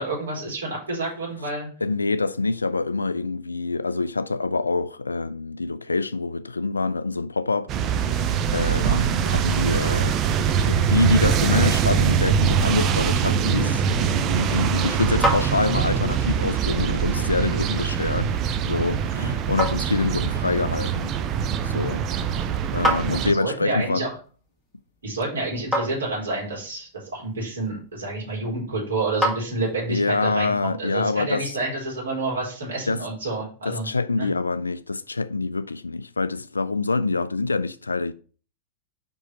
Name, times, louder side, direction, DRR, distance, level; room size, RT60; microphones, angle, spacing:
voice 1, 0.0-1.7 8.8-9.0 19.1-19.3 23.3-24.1 25.0-33.9 34.2-34.3, right 2 dB, 70° right, 4.0 m, -29 dB
voice 2, 1.8-7.7 8.0-10.2 10.7-18.3 18.7-21.1 21.6-22.0 22.7-24.1 29.9-31.4 32.9-33.0 33.6-38.1, left 3 dB, 80° left, 0.4 m, -26 dB
sound 1, 7.7-23.3, right 7 dB, 35° right, 0.6 m, -23 dB
sound 2, 23.3-30.1, equal, 5° left, 1.9 m, -33 dB
5.5 x 4.8 x 5.3 m
figure-of-eight pair, 90°, 0 cm